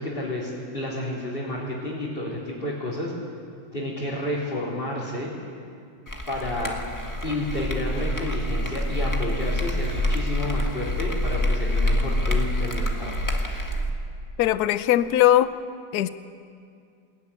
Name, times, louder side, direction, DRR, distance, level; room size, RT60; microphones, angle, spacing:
voice 1, 0.0-3.1 3.7-5.3 6.3-6.8 7.2-13.1, left 1 dB, 25° left, -7 dB, 3.8 m, -30 dB
sound 1, 6.1-13.9, left 1 dB, 10° left, 1.6 m, -26 dB
voice 2, 14.4-15.5 15.9-16.1, left 13 dB, 60° left, 13 dB, 1.1 m, -19 dB
21.5 x 17.0 x 10.0 m, 2.3 s
omnidirectional pair, 2.2 m